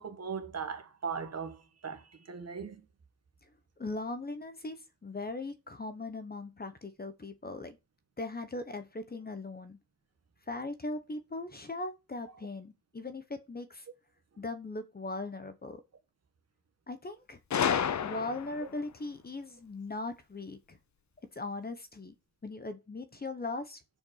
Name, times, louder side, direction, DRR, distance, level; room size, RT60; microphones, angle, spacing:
voice 1, 0.0-2.8 12.3-12.4 18.6-18.7, right 6 dB, 45° right, 1.4 m, -39 dB
voice 2, 3.8-7.8 8.2-9.8 10.5-13.8 14.4-15.8 16.9-17.4 18.0-20.8 21.3-22.1 22.4-23.8, left 2 dB, 25° left, 0.9 m, -39 dB
Gunshot gunfire, 17.5-18.7, left 8 dB, 50° left, 0.7 m, -30 dB
7.0 x 5.1 x 6.3 m
wide cardioid pair, 170°, 35 cm